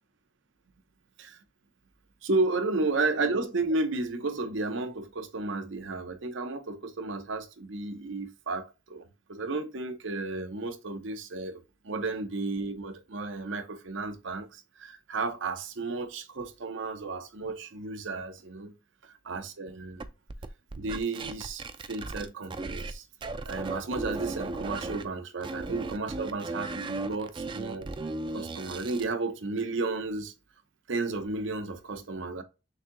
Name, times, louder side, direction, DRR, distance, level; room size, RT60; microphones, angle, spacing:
voice 1, 2.2-18.7 19.0-20.0 20.8-23.0 23.5-27.9 28.3-30.3 30.9-32.4, right 3 dB, 75° right, 0.7 m, -33 dB
sound 1, 20.0-22.9 23.2-25.0 25.4-29.1, right 3 dB, 25° right, 0.3 m, -36 dB
6.4 x 2.7 x 2.5 m
head